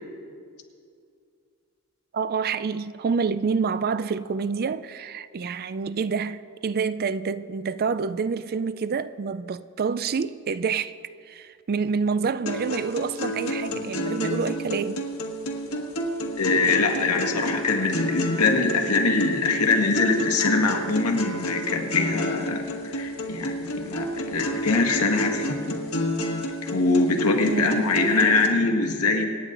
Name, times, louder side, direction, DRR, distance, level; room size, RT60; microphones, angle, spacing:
voice 1, 2.1-10.9 11.3-15.0 27.4-28.3, right 5 dB, 45° right, 0.4 m, -28 dB
sound 1, 12.5-28.5, equal, 70° left, 1.5 m, -30 dB
voice 2, 16.4-25.8 26.7-29.2, left 3 dB, 85° left, 1.8 m, -23 dB
26.5 x 9.3 x 3.9 m
head